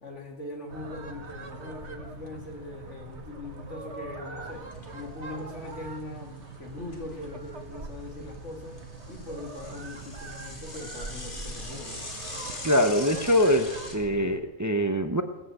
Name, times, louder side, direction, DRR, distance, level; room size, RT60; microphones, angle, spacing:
voice 1, 0.0-4.7 4.9-8.8 9.1-12.0, left 2 dB, 70° left, 1 dB, 2.3 m, -41 dB
sound 1, 0.7-14.4, right 3 dB, 60° right, 1.7 m, -42 dB
Bicycle / Mechanisms, 4.4-5.0 5.4-5.5 5.7-5.8 6.5-7.7 8.0-14.0, left 2 dB, 40° left, 2.5 m, -42 dB
voice 2, 12.6-15.2, equal, 15° right, 8 dB, 0.7 m, -23 dB
19.0 x 8.5 x 8.0 m, 1.1 s
omnidirectional pair, 1.3 m